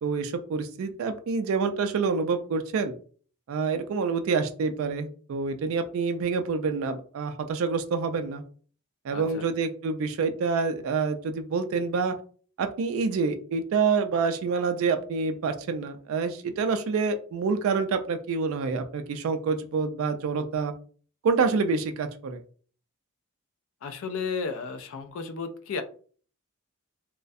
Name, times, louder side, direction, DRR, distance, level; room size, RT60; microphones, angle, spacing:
voice 1, 0.0-2.9 3.5-8.4 9.0-12.2 12.6-20.7 21.2-22.4, right 5 dB, 65° right, 8 dB, 0.3 m, -27 dB
voice 2, 9.1-9.5 23.8-25.8, left 5 dB, 60° left, 9 dB, 0.3 m, -33 dB
2.3 x 2.1 x 2.5 m, 0.43 s
head